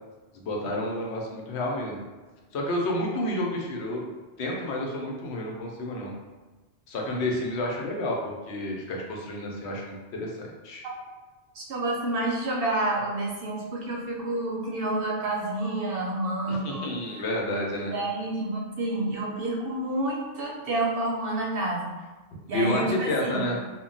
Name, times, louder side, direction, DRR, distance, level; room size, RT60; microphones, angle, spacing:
voice 1, 0.3-2.0 2.5-4.0 4.4-6.1 6.9-10.9 16.5-17.9 22.5-23.6, left 1 dB, 75° left, -1 dB, 0.9 m, -30 dB
voice 2, 11.5-16.9 17.9-21.9 22.5-23.5, right 2 dB, 65° right, -2 dB, 0.7 m, -29 dB
2.2 x 2.1 x 3.8 m, 1.2 s
omnidirectional pair, 1.1 m